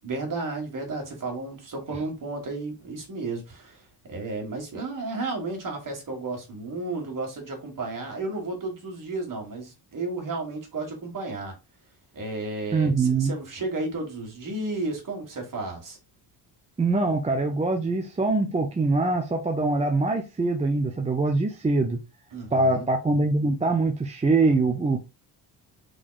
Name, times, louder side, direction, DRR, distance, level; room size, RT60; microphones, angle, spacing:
voice 1, 0.0-11.5 12.1-16.0 22.3-22.9, right 3 dB, 45° right, 1.9 m, -33 dB
voice 2, 12.7-13.3 16.8-22.0 22.5-25.0, right 3 dB, 15° right, 0.6 m, -23 dB
3.8 x 3.3 x 2.4 m
cardioid pair, 85°, 44 cm